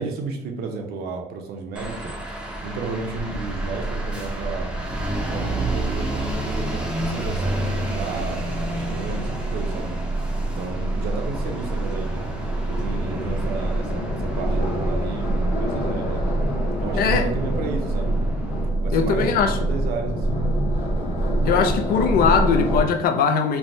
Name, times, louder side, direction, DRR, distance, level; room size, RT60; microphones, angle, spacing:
voice 1, 0.0-2.1 2.6-4.7 5.3-9.9 10.5-12.2 12.7-16.2 16.8-18.1 18.8-20.4, right 4 dB, 70° right, 0.6 m, -32 dB
sound 1, 1.8-18.7, right 1 dB, 5° right, 0.5 m, -32 dB
sound 2, 3.3-22.8, right 1 dB, 35° left, 0.9 m, -26 dB
voice 2, 17.0-17.3 18.9-19.6 21.5-23.6, left 6 dB, 60° left, 0.4 m, -20 dB
3.3 x 2.1 x 2.6 m
cardioid pair, 110°, 17 cm